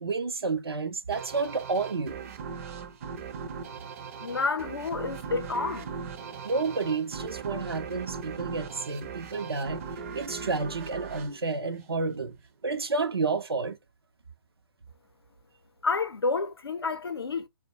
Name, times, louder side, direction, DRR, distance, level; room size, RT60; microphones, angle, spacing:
voice 1, 0.0-2.2 6.4-9.9 10.1-12.4 12.6-13.8, right 4 dB, 90° right, 0.5 m, -30 dB
sound 1, 1.1-12.3, right 6 dB, 40° right, 0.5 m, -39 dB
voice 2, 4.2-5.9 15.8-17.5, left 4 dB, 85° left, 0.5 m, -29 dB
2.2 x 2.1 x 2.7 m
figure-of-eight pair, 135°, 12 cm